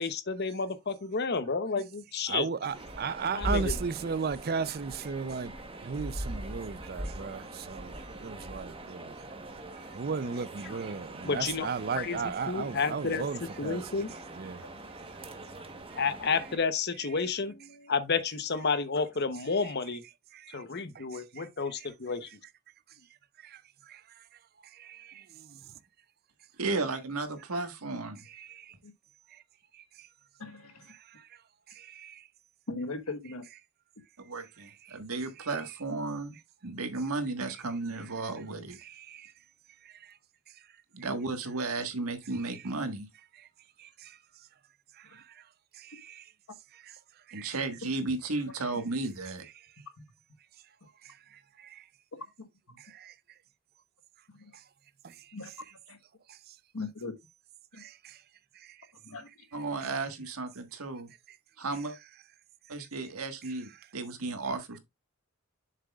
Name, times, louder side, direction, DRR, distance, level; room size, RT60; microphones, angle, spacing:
voice 1, 0.0-2.5 3.3-3.8 10.6-10.8 11.2-12.2 12.5-13.2 13.6-14.1 16.0-20.0 20.5-22.3, left 4 dB, 50° left, 0.9 m, -31 dB
voice 2, 2.3-5.5 5.8-9.2 9.9-13.8 14.4-14.6 20.3-20.6 20.9-21.5 23.4-23.6 23.9-24.0 24.7-25.6 28.3-28.7 29.7-30.1 31.2-31.3 31.8-32.2 34.9-35.0 38.8-39.3 39.8-40.1 43.8-44.2 45.0-45.4 45.7-46.2 46.8-46.9 47.3-47.5 51.0-51.8 52.8-53.1 55.0-55.1 56.3-56.4 57.8-58.2 58.6-58.8, right 5 dB, 45° right, 0.5 m, -36 dB
sound 1, 2.7-16.6, right 1 dB, 25° right, 1.1 m, -41 dB
voice 3, 26.6-28.4 34.2-36.4 36.6-38.8 40.9-43.1 47.3-49.4 59.5-61.1 61.6-62.0 62.7-64.8, right 3 dB, 85° right, 1.5 m, -34 dB
voice 4, 30.4-30.9 32.7-33.4 45.1-45.2 52.4-52.8 54.4-54.5 55.3-55.5 55.9-56.0 56.7-57.1 57.7-57.8 59.0-59.4, left 3 dB, 80° left, 1.3 m, -39 dB
7.4 x 6.6 x 2.3 m
head